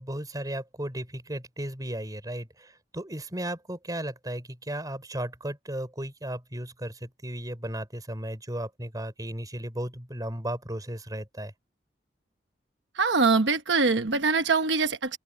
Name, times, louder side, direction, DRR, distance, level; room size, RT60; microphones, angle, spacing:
voice 1, 0.0-11.5, right 1 dB, 20° right, 4.8 m, -35 dB
voice 2, 12.9-15.2, right 4 dB, 85° right, 1.1 m, -23 dB
open air
head